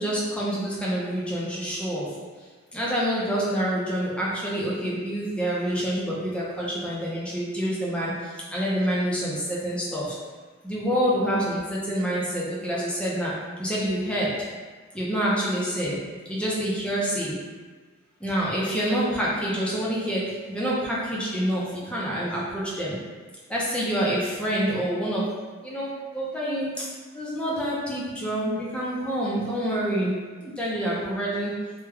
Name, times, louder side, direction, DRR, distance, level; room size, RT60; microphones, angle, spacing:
voice 1, 0.0-2.2 2.7-10.2 10.6-14.4 14.9-17.4 18.2-23.0 23.5-25.4 25.6-31.6, equal, 5° left, -7 dB, 0.6 m, -27 dB
3.4 x 2.3 x 3.3 m, 1.4 s
head